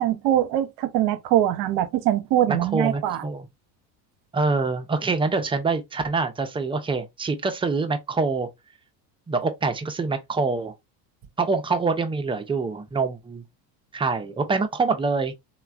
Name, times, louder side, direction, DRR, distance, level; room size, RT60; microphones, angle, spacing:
voice 1, 0.0-3.2, right 12 dB, 55° right, 0.7 m, -22 dB
voice 2, 2.5-3.4 4.3-8.5 9.3-10.7 11.4-13.4 13.9-15.3, right 4 dB, 10° right, 0.4 m, -25 dB
3.1 x 2.2 x 2.3 m
hypercardioid pair, 75°, 49 cm